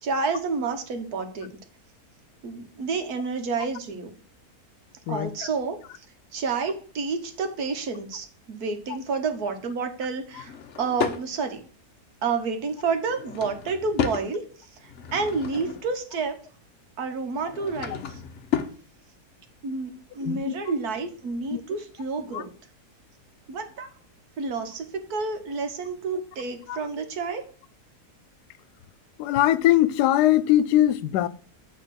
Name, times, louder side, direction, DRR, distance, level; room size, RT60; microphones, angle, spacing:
voice 1, 0.0-1.5 2.4-4.1 5.1-5.8 6.3-11.6 12.2-14.4 14.8-16.4 17.0-18.2 19.6-22.5 23.5-23.9 24.4-27.4, right 4 dB, 70° right, 1.7 m, -29 dB
Drawer open or close / Wood, 10.3-11.2 13.0-14.3 14.8-16.0 17.3-18.8, left 8 dB, 55° left, 1.0 m, -32 dB
voice 2, 20.2-20.6 21.5-21.6 22.3-22.4 26.7-26.8 29.2-31.3, left 13 dB, 90° left, 1.2 m, -21 dB
8.9 x 3.7 x 6.2 m
omnidirectional pair, 1.7 m